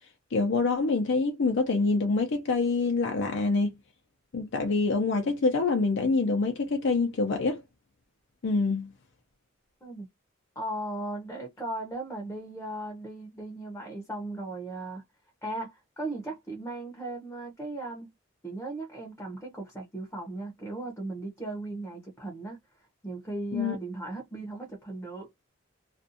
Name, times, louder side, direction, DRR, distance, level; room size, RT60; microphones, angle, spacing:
voice 1, 0.3-3.8 4.3-7.6 8.4-8.9 23.5-23.8, left 3 dB, 65° left, 0.5 m, -26 dB
voice 2, 10.6-15.0 15.4-18.1 18.4-22.6 23.0-25.3, right 2 dB, 10° left, 0.7 m, -37 dB
2.5 x 2.2 x 2.6 m
head